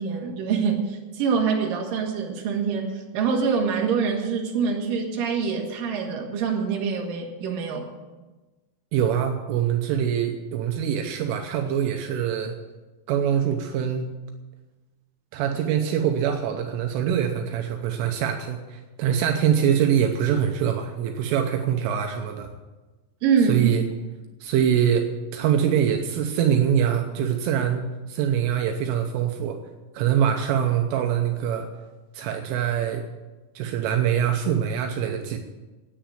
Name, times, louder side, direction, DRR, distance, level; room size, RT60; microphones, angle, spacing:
voice 1, 0.0-7.9 23.2-23.7, right 6 dB, 55° right, 0 dB, 2.9 m, -25 dB
voice 2, 8.9-12.6 13.1-14.2 15.3-22.5 23.5-23.8 24.4-25.1 25.3-27.8 28.1-29.6 29.9-31.7 32.1-33.0 33.6-35.4, right 9 dB, 80° right, 4 dB, 3.2 m, -24 dB
10.0 x 9.3 x 8.9 m, 1.2 s
omnidirectional pair, 6.0 m